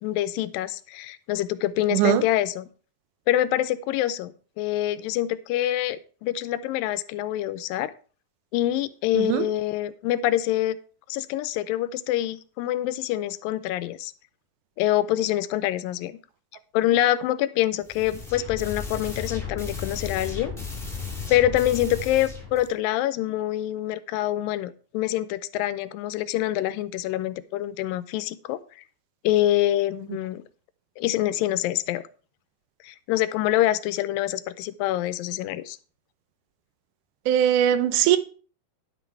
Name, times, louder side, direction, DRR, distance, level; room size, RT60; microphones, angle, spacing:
voice 1, 0.0-2.7 3.3-7.9 8.5-10.8 11.1-14.1 14.8-16.2 16.7-20.5 21.3-28.6 29.2-30.4 31.0-32.0 32.8-35.8, left 13 dB, 85° left, 2.2 m, -25 dB
voice 2, 1.9-2.2 9.2-9.5 37.3-38.2, right 11 dB, 80° right, 1.9 m, -20 dB
sound 1, 17.8-22.7, left 5 dB, ahead, 1.8 m, -35 dB
10.5 x 6.1 x 4.6 m
omnidirectional pair, 4.1 m